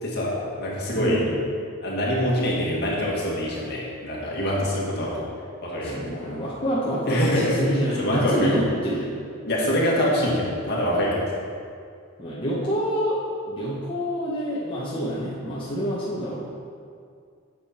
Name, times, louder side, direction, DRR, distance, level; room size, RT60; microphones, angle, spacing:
voice 1, 0.0-1.3 1.8-5.2 5.6-6.0 7.1-7.7 8.0-8.5 9.4-11.3, equal, 50° left, -4 dB, 1.8 m, -24 dB
voice 2, 0.9-1.3 5.9-9.1 12.2-13.2 13.5-16.5, equal, 25° left, -7 dB, 1.0 m, -27 dB
8.5 x 6.7 x 4.3 m, 2.3 s
head